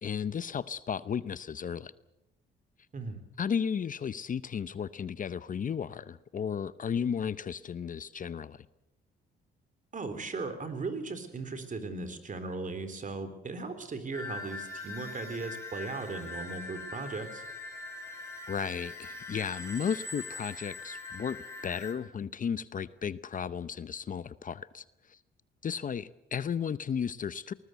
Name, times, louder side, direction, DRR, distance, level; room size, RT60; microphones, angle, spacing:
voice 1, 0.0-1.9 3.4-8.7 18.5-25.2 25.6-27.5, left 7 dB, 40° left, 16 dB, 0.7 m, -34 dB
voice 2, 9.9-17.4, right 3 dB, 40° right, 10 dB, 3.8 m, -37 dB
sound 1, 14.1-21.9, left 2 dB, 15° left, 7.9 m, -42 dB
20.5 x 19.5 x 8.1 m, 0.89 s
cardioid pair, 90°, 20 cm